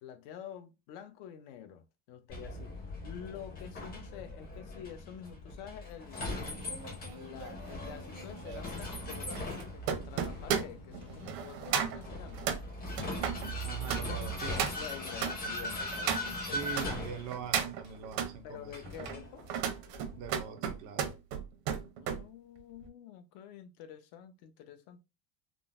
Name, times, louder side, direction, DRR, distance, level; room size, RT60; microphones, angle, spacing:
voice 1, 0.0-6.3 7.1-12.6 14.1-14.4 14.8-17.1 18.4-19.8 22.0-25.0, left 9 dB, 55° left, 0.6 m, -48 dB
Vehicle, 2.3-20.4, left 1 dB, 20° left, 0.7 m, -40 dB
sound 1, 6.3-16.9 17.3-18.3 18.9-22.2 22.6-22.9, right 8 dB, 90° right, 0.8 m, -36 dB
sound 2, 10.1-14.1, left 2 dB, 80° left, 1.4 m, -53 dB
voice 2, 13.6-14.6 16.4-18.7 20.2-21.2, right 8 dB, 40° right, 0.5 m, -42 dB
3.7 x 2.0 x 2.4 m
cardioid pair, 170°, 47 cm